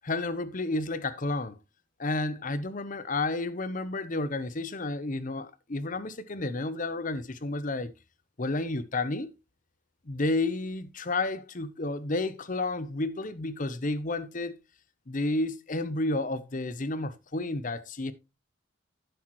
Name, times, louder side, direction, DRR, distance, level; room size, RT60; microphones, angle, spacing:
voice 1, 0.0-1.6 2.0-7.9 8.4-9.3 10.1-14.6 15.1-18.1, left 2 dB, 40° left, 0.8 m, -31 dB
10.5 x 7.9 x 3.1 m
head